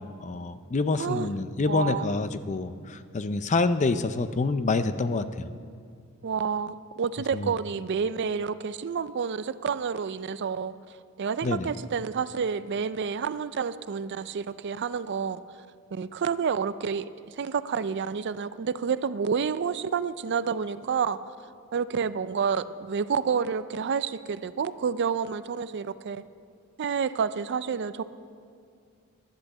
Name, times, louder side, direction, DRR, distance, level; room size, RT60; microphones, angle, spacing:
voice 1, 0.0-5.5 7.3-7.5 11.4-11.7, left 3 dB, 35° left, 11 dB, 0.5 m, -27 dB
voice 2, 1.0-1.3 1.7-2.1 6.2-10.8 11.2-15.4 15.9-21.2 21.7-26.2 26.8-28.0, right 6 dB, 55° right, 15 dB, 0.4 m, -29 dB
11.5 x 10.5 x 7.3 m, 2.3 s
head